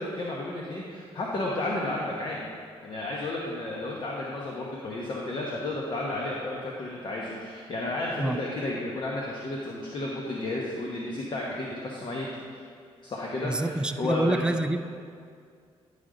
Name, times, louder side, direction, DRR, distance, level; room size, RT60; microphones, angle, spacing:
voice 1, 0.0-2.5 2.8-12.3 12.5-12.6 13.0-14.6, left 2 dB, 45° left, -3 dB, 1.0 m, -32 dB
voice 2, 13.4-14.8, right 2 dB, 10° right, 7 dB, 0.4 m, -27 dB
11.0 x 5.0 x 3.8 m, 2.2 s
cardioid pair, 90°, 11 cm